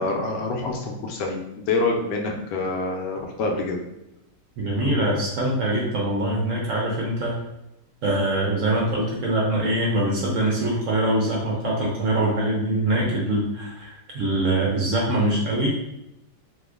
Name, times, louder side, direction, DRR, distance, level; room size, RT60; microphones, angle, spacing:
voice 1, 0.0-1.4 1.7-3.8, left 3 dB, 75° left, 1 dB, 1.2 m, -26 dB
voice 2, 4.6-7.4 8.0-15.7, right 1 dB, 60° right, -3 dB, 0.8 m, -23 dB
2.9 x 2.3 x 3.4 m, 0.88 s
omnidirectional pair, 1.8 m